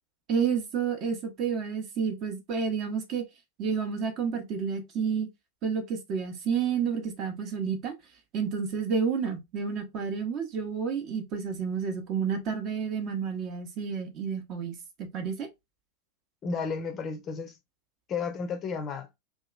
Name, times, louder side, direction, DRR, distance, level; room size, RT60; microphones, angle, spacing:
voice 1, 0.3-3.2 3.6-5.3 5.6-7.9 8.3-15.5, right 6 dB, 35° right, 0.7 m, -30 dB
voice 2, 16.4-17.6 18.1-19.1, left 5 dB, 30° left, 0.5 m, -32 dB
2.8 x 2.3 x 2.4 m
figure-of-eight pair, 90°, 0 cm